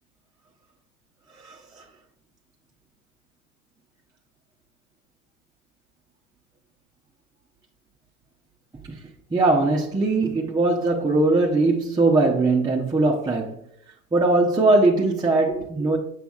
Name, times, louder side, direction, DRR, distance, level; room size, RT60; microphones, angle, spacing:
voice 1, 1.4-1.8 8.9-9.0 9.3-13.6 14.1-16.0, right 2 dB, 10° right, 0.7 m, -20 dB
6.8 x 6.3 x 2.3 m
hypercardioid pair, 85°, 43 cm